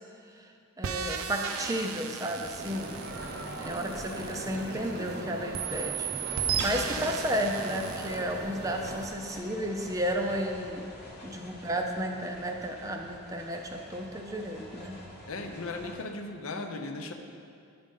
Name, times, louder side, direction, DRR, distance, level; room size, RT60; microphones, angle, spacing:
voice 1, 0.3-2.9 3.6-10.9 11.2-15.0, equal, 15° right, 3 dB, 0.4 m, -33 dB
sound 1, 0.8-5.1 5.5-8.2, right 7 dB, 85° right, 0.5 m, -35 dB
sound 2, 2.4-16.0, equal, 30° left, 1.0 m, -48 dB
sound 3, 2.6-9.1, right 2 dB, 50° right, 0.8 m, -39 dB
voice 2, 15.3-17.1, left 3 dB, 80° left, 5 dB, 0.6 m, -37 dB
10.5 x 5.2 x 3.7 m, 2.4 s
head